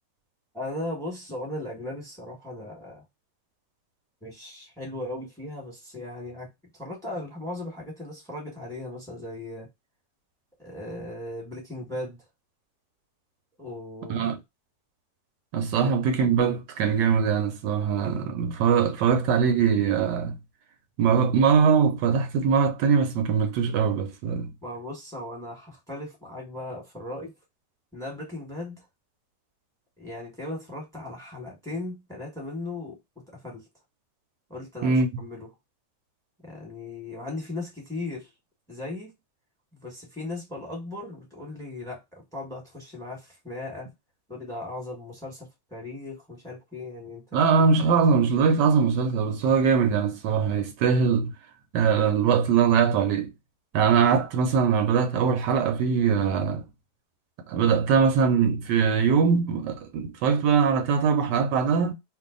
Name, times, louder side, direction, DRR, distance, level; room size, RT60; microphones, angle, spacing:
voice 1, 0.5-3.0 4.2-9.7 10.6-12.2 13.6-14.4 15.8-15.9 18.3-18.4 24.6-27.3 27.9-28.8 30.0-33.7 34.5-35.5 36.4-38.3 38.7-39.2 39.7-43.9 44.3-47.4, left 2 dB, ahead, 1.3 m, -37 dB
voice 2, 15.5-20.4 21.0-24.5 34.8-35.1 47.3-51.3 51.7-53.3 53.7-56.7 57.5-61.9, right 6 dB, 80° right, 1.2 m, -22 dB
2.7 x 2.5 x 3.7 m
omnidirectional pair, 1.9 m